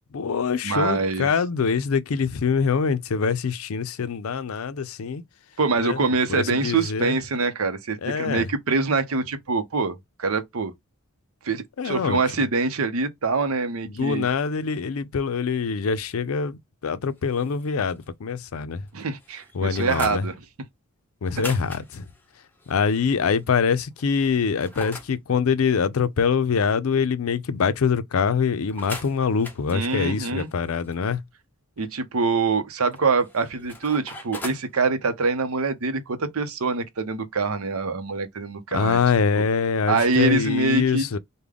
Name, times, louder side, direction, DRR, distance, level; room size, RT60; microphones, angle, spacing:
voice 1, 0.1-5.2 5.8-6.0 6.3-7.2 8.0-8.5 11.8-12.2 13.9-18.8 19.5-20.2 21.2-22.1 22.7-31.2 38.7-41.2, left 5 dB, 75° left, 0.5 m, -24 dB
voice 2, 0.6-1.3 5.6-10.7 11.4-14.3 18.9-20.4 21.4-21.5 29.7-30.5 31.8-39.0 39.3-39.4 39.9-41.1, right 4 dB, 75° right, 0.7 m, -24 dB
sound 1, 17.2-18.1 18.4-18.5 18.9-20.2 21.2-23.4 24.0-25.1 28.7-30.9 32.9-34.7, left 2 dB, 10° left, 0.7 m, -41 dB
3.5 x 2.2 x 3.4 m
head